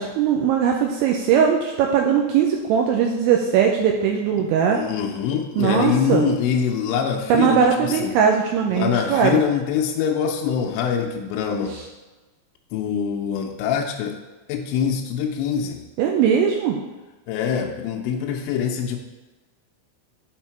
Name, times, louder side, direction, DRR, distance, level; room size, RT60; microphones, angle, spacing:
voice 1, 0.0-4.8 5.6-6.3 7.3-9.4 11.7-11.8 16.0-16.8, right 7 dB, 85° right, 2 dB, 2.6 m, -20 dB
voice 2, 4.7-8.1 8.7-11.7 12.7-14.2 14.5-15.8 17.3-19.0, left 7 dB, 85° left, 1 dB, 2.6 m, -24 dB
8.2 x 3.7 x 4.5 m, 1.2 s
omnidirectional pair, 5.9 m